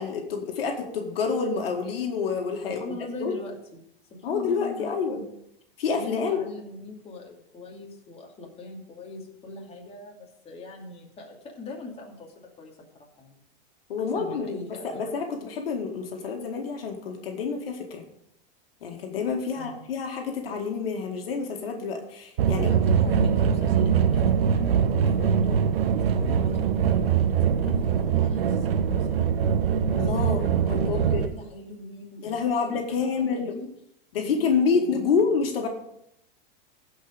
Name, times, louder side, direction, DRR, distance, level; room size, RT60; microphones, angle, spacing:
voice 1, 0.0-2.8 3.2-3.4 4.2-5.2 5.8-6.4 13.9-14.6 14.8-18.0 18.8-22.7 27.6-27.8 29.9-31.3 32.2-33.5 34.1-35.7, left 5 dB, 80° left, 2 dB, 2.1 m, -28 dB
voice 2, 2.6-3.8 4.3-5.0 5.9-13.3 14.1-15.2 19.5-19.8 22.5-24.4 25.0-25.6 25.9-29.2 30.7-33.7 34.2-35.4, left 2 dB, 20° left, -1 dB, 2.6 m, -41 dB
sound 1, 22.4-31.3, right 7 dB, 80° right, 1.1 m, -23 dB
15.5 x 5.4 x 5.1 m, 0.77 s
hypercardioid pair, 115°, 29 cm